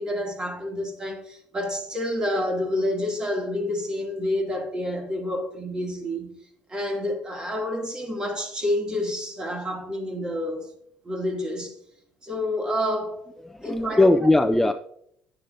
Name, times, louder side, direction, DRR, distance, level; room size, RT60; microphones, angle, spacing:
voice 1, 0.0-6.4 6.7-10.7 11.0-11.8 12.2-13.2 13.6-14.1, left 1 dB, 20° right, 2.4 m, -28 dB
voice 2, 13.5-14.7, left 2 dB, 5° left, 0.5 m, -19 dB
10.0 x 9.7 x 2.6 m
cardioid pair, 105°, 4 cm